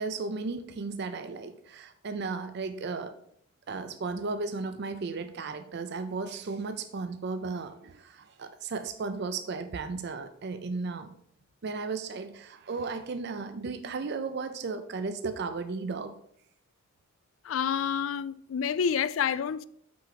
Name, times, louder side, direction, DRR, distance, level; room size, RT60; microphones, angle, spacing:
voice 1, 0.0-3.2 3.7-11.1 11.6-16.1, right 4 dB, 55° right, 0.5 m, -35 dB
voice 2, 17.4-19.7, left 7 dB, 70° left, 0.3 m, -28 dB
6.0 x 4.8 x 5.8 m
head